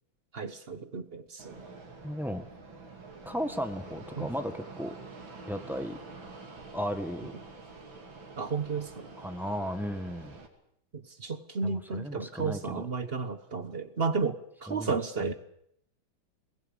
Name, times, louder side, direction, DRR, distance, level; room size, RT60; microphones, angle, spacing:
voice 1, 0.3-1.7 4.2-4.3 8.4-9.1 10.9-15.3, right 4 dB, 40° right, 11 dB, 1.0 m, -33 dB
Fixed-wing aircraft airplane, 1.4-10.5, right 3 dB, 80° right, 3.6 m, -47 dB
voice 2, 2.0-2.5 3.2-4.9 5.5-6.0 6.7-7.3 9.2-10.3 11.6-12.8 14.7-14.9 15.2-15.3, equal, ahead, 7 dB, 1.4 m, -35 dB
22.0 x 19.0 x 8.3 m, 0.72 s
omnidirectional pair, 2.1 m